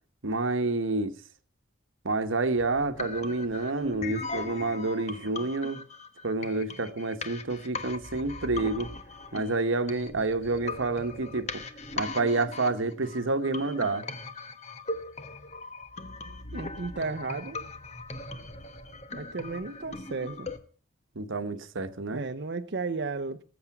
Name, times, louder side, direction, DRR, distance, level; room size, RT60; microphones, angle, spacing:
voice 1, 0.2-1.1 2.0-5.8 6.2-8.9 9.3-11.6 11.9-14.1 21.1-22.2, right 3 dB, 85° right, 1.2 m, -29 dB
sound 1, 2.6-20.6, left 3 dB, 35° left, 1.1 m, -39 dB
voice 2, 16.5-17.6 19.1-20.5 21.5-21.6 22.1-23.4, right 3 dB, 60° right, 0.7 m, -34 dB
19.5 x 8.0 x 6.0 m
head